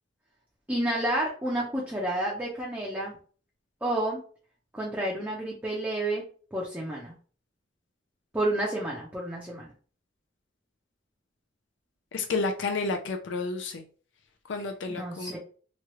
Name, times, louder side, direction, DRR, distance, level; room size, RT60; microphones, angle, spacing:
voice 1, 0.7-3.1 3.8-4.2 4.7-6.2 6.5-7.1 8.3-9.7 15.0-15.4, right 1 dB, 10° right, -4 dB, 0.6 m, -30 dB
voice 2, 12.1-13.8 14.5-15.3, left 3 dB, 70° left, 4 dB, 0.5 m, -30 dB
3.0 x 2.3 x 2.9 m, 0.41 s
head